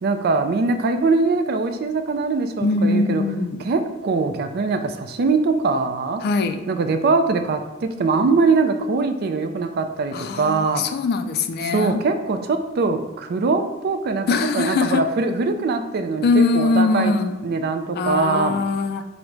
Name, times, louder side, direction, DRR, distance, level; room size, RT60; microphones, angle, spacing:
voice 1, 0.0-3.2 3.7-6.2 6.7-10.8 11.6-14.3 14.5-17.1 17.4-18.6, right 4 dB, 55° right, 7 dB, 0.4 m, -22 dB
voice 2, 2.6-3.6 6.2-6.6 10.1-12.0 14.3-15.0 16.2-17.4 18.0-19.0, left 3 dB, 55° left, 8 dB, 0.3 m, -21 dB
5.0 x 2.1 x 4.5 m, 1.1 s
head